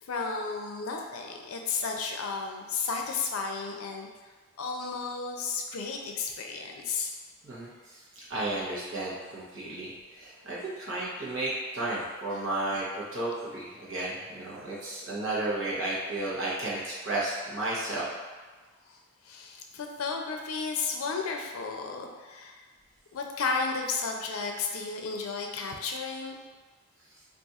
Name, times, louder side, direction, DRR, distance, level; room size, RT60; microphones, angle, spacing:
voice 1, 0.1-4.1 4.6-7.1 19.2-22.6 23.1-26.4, left 4 dB, 85° left, 2 dB, 0.4 m, -33 dB
voice 2, 7.4-18.1, right 2 dB, 60° right, -7 dB, 0.9 m, -33 dB
2.5 x 2.4 x 4.1 m, 1.3 s
head